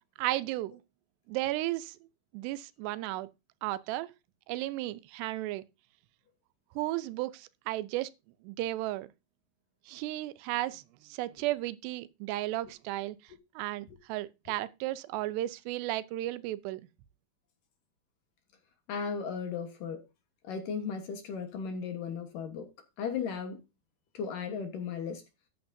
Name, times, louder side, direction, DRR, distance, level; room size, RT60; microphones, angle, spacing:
voice 1, 0.2-0.8 1.3-2.0 2.3-3.3 3.6-4.1 4.5-5.6 6.8-8.1 8.4-9.1 9.9-13.2 13.6-16.8, right 16 dB, 85° right, 2.8 m, -34 dB
voice 2, 18.9-20.0 20.4-22.7 23.0-23.6 24.1-25.2, left 6 dB, 65° left, 2.5 m, -36 dB
13.5 x 8.6 x 2.7 m
omnidirectional pair, 4.8 m